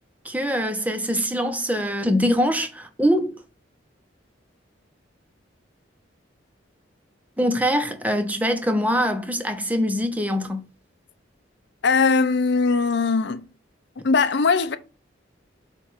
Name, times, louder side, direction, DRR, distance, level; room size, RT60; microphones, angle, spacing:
voice 1, 0.2-3.3 7.4-10.7, equal, 10° right, 0.8 m, -23 dB
voice 2, 11.8-13.5 14.0-14.8, left 4 dB, 65° left, 0.6 m, -20 dB
7.3 x 2.5 x 5.6 m
head